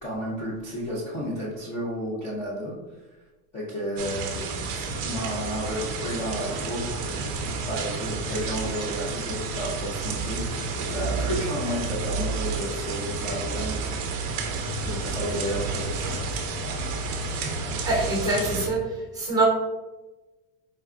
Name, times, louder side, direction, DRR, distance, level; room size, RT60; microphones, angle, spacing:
voice 1, 0.0-2.7 3.5-7.2 7.7-14.1 14.5-16.4, equal, 15° left, -6 dB, 0.4 m, -32 dB
sound 1, 4.0-18.7, right 4 dB, 35° right, 0.5 m, -30 dB
voice 2, 17.8-18.8 19.1-19.4, right 2 dB, 10° right, -3 dB, 0.8 m, -24 dB
4.6 x 2.2 x 3.5 m, 1.1 s
cardioid pair, 175°, 45 cm